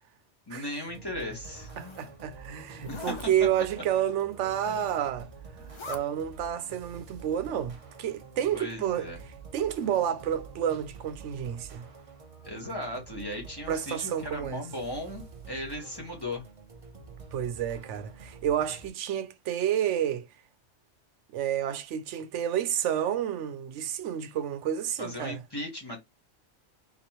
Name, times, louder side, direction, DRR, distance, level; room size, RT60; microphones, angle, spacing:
voice 1, 0.5-1.7 2.9-3.2 8.5-9.2 12.4-16.4 25.0-26.0, left 1 dB, 20° left, 1.2 m, -37 dB
sound 1, 0.9-18.9, right 5 dB, 40° right, 0.6 m, -48 dB
Zipper (clothing), 1.4-2.1 2.7-3.3 4.4-5.1 5.5-6.0, left 4 dB, 45° left, 0.4 m, -43 dB
voice 2, 1.8-5.3 5.9-9.1 9.5-11.8 13.7-14.6 17.3-20.3 21.3-25.4, right 10 dB, 85° right, 0.9 m, -30 dB
3.7 x 2.9 x 2.8 m
omnidirectional pair, 1.2 m